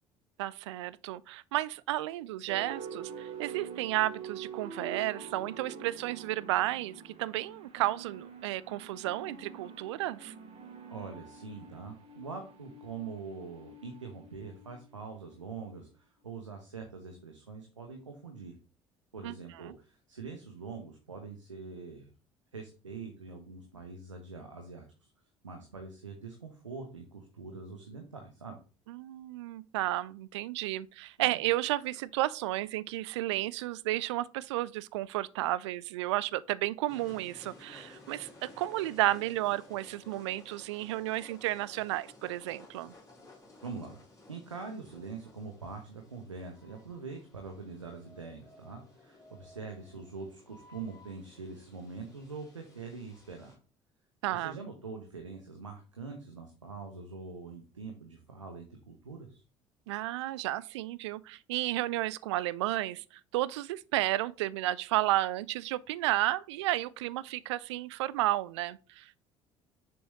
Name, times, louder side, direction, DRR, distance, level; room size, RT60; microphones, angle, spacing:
voice 1, 0.4-10.3 19.2-19.3 19.7-19.8 28.9-42.9 54.2-54.6 59.9-63.0 63.3-69.2, right 16 dB, 65° right, 0.4 m, -32 dB
sound 1, 2.5-15.8, right 6 dB, 40° right, 2.3 m, -46 dB
voice 2, 10.9-18.6 19.1-22.1 22.5-25.1 25.4-28.6 31.2-31.4 43.6-44.0 44.3-53.6 54.3-59.4, right 4 dB, 85° right, 0.9 m, -44 dB
sound 2, 36.9-53.6, left 2 dB, 20° left, 3.4 m, -56 dB
7.0 x 6.1 x 3.0 m
figure-of-eight pair, 55°, 16 cm